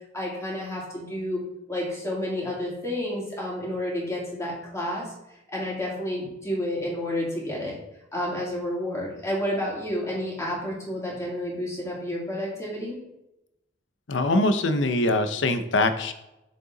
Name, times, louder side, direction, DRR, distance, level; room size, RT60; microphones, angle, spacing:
voice 1, 0.1-1.4 1.7-5.1 5.5-7.8 8.1-13.0, left 1 dB, 15° left, -4 dB, 2.7 m, -30 dB
voice 2, 14.1-16.1, left 2 dB, 75° left, 9 dB, 0.7 m, -23 dB
6.8 x 6.7 x 3.9 m, 0.91 s
head